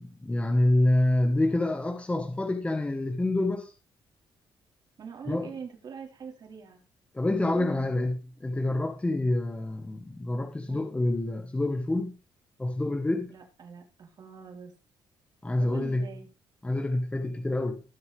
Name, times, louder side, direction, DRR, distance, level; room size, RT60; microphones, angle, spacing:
voice 1, 0.0-3.7 5.3-5.5 7.1-12.2 12.6-13.3 15.4-16.0 16.6-17.8, left 1 dB, 15° left, 1.4 m, -27 dB
voice 2, 5.0-6.8 7.4-8.1 10.7-10.9 13.3-14.7 15.6-16.3, right 6 dB, 50° right, 4.6 m, -43 dB
19.5 x 6.8 x 3.5 m
cardioid pair, 125°, 9 cm